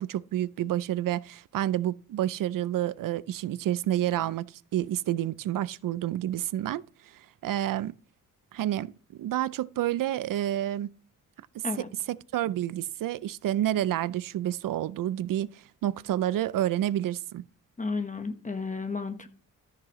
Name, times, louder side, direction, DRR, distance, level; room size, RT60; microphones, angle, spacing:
voice 1, 0.0-7.9 8.5-10.9 12.1-17.4, right 12 dB, 80° right, 0.5 m, -29 dB
voice 2, 17.8-19.3, left 4 dB, 25° left, 1.2 m, -32 dB
13.5 x 6.2 x 3.1 m
wide cardioid pair, 120°, 32 cm